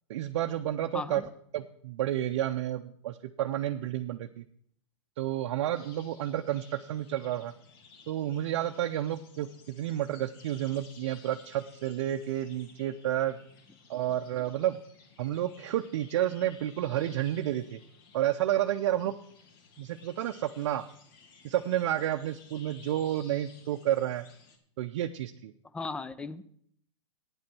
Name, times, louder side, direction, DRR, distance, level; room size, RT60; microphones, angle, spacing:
voice 1, 0.1-1.2 1.5-4.4 5.2-7.5 8.1-13.4 13.9-14.8 15.2-17.8 18.1-19.1 19.8-20.8 21.4-24.2 24.8-25.5, right 12 dB, 60° right, 6 dB, 0.6 m, -30 dB
sound 1, 5.7-24.6, left 5 dB, 45° left, 1.7 m, -57 dB
voice 2, 25.7-26.4, left 3 dB, 5° left, 16 dB, 0.4 m, -36 dB
9.0 x 8.6 x 6.1 m, 0.65 s
hypercardioid pair, 135°, 16 cm